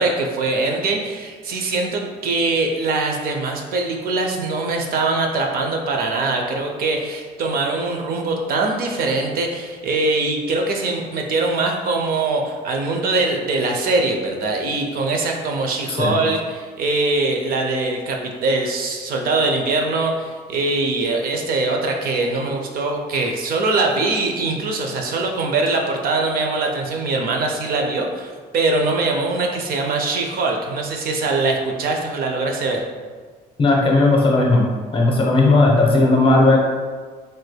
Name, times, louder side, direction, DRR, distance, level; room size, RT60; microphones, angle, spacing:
voice 1, 0.0-32.8, right 3 dB, 60° right, 2 dB, 0.5 m, -22 dB
voice 2, 33.6-34.6 34.9-36.6, left 2 dB, 30° left, -1 dB, 0.7 m, -15 dB
3.2 x 3.2 x 2.2 m, 1.5 s
cardioid pair, 110°, 17 cm